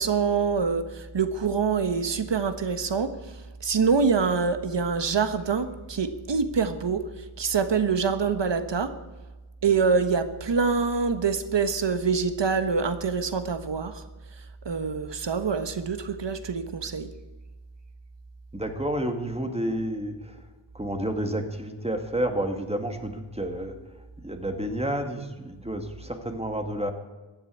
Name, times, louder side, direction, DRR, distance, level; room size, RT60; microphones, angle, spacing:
voice 1, 0.0-3.2 3.6-7.0 7.4-9.0 9.6-14.0 14.6-17.1, right 5 dB, 55° right, 10 dB, 1.3 m, -25 dB
voice 2, 18.5-20.3 20.7-23.7 24.2-26.9, right 1 dB, 10° right, 6 dB, 2.1 m, -30 dB
15.0 x 9.8 x 8.5 m, 1.2 s
cardioid pair, 70°, 50 cm